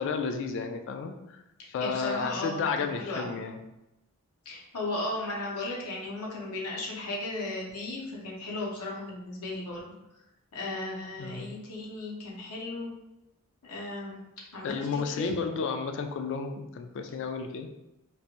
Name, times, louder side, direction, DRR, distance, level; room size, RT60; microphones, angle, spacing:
voice 1, 0.0-1.4 1.7-3.6 11.2-11.5 14.6-17.7, left 5 dB, 55° left, 6 dB, 0.3 m, -32 dB
voice 2, 1.8-3.3 4.4-9.8 10.5-12.9 13.6-14.2 14.5-15.3, left 2 dB, 85° left, -3 dB, 0.9 m, -36 dB
3.3 x 2.4 x 2.9 m, 0.92 s
head